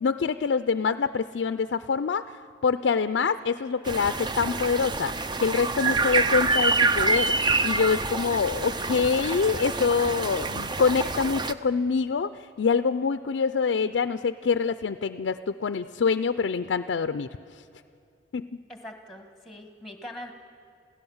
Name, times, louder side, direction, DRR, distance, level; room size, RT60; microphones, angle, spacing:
voice 1, 0.0-2.2 2.6-5.1 5.4-12.3 12.6-17.3 18.3-18.5, left 5 dB, 75° left, 10 dB, 0.4 m, -25 dB
sound 1, 3.9-11.5, right 3 dB, 25° right, 0.5 m, -26 dB
voice 2, 18.7-20.3, left 1 dB, ahead, 5 dB, 1.5 m, -42 dB
27.5 x 16.0 x 7.1 m, 2.4 s
head